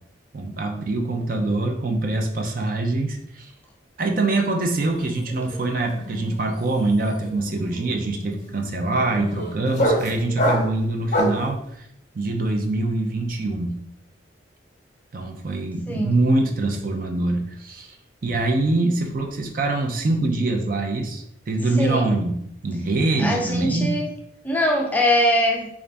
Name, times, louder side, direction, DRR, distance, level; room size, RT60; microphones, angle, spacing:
voice 1, 0.3-3.5 4.0-11.6 12.1-13.8 15.1-18.0 18.2-22.4 22.6-24.0, right 2 dB, 50° right, 3 dB, 0.5 m, -24 dB
sound 1, 4.8-5.0 5.3-11.5, equal, 40° left, 0.8 m, -27 dB
voice 2, 15.9-16.2 21.8-22.1 23.2-24.1 24.4-25.7, left 1 dB, 10° left, 0 dB, 0.5 m, -22 dB
3.9 x 2.4 x 3.4 m, 0.72 s
head